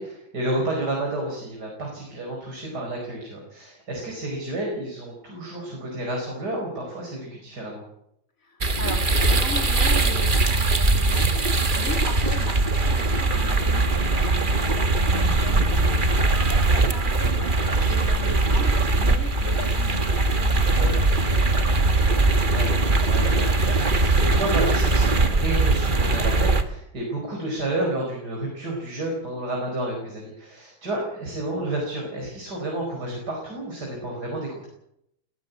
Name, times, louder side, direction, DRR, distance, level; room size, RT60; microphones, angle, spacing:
voice 1, 0.0-7.8 11.4-11.6 15.1-15.7 20.8-20.9 22.4-34.7, right 1 dB, 55° right, -1 dB, 5.6 m, -31 dB
voice 2, 8.4-22.4, left 4 dB, 45° left, 4 dB, 3.7 m, -39 dB
sound 1, 8.6-26.6, right 2 dB, 30° right, 1.5 m, -21 dB
21.0 x 15.5 x 8.3 m, 0.77 s
omnidirectional pair, 2.1 m